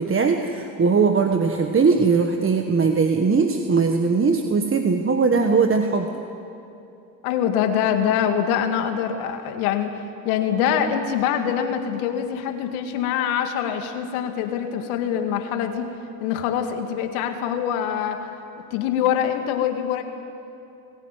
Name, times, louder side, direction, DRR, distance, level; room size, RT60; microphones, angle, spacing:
voice 1, 0.0-6.1, right 5 dB, 30° right, 4 dB, 1.6 m, -20 dB
voice 2, 7.2-9.9 10.2-15.9 16.2-18.2 18.7-20.0, left 9 dB, 85° left, 6 dB, 2.2 m, -24 dB
21.5 x 17.5 x 9.1 m, 2.7 s
supercardioid pair, 75°, 42 cm